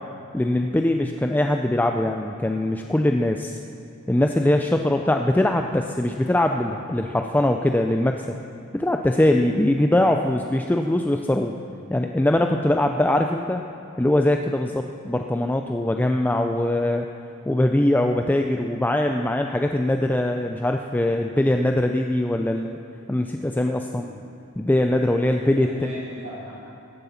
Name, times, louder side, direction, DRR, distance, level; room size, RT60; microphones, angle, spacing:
voice 1, 0.3-3.6 4.1-8.3 8.7-11.5 11.9-13.6 14.0-17.1 17.5-22.8 23.1-24.1 24.6-25.7, left 1 dB, 10° left, 4 dB, 0.4 m, -22 dB
voice 2, 25.3-26.5, equal, 55° right, -11 dB, 3.8 m, -39 dB
16.5 x 9.6 x 7.1 m, 2.8 s
head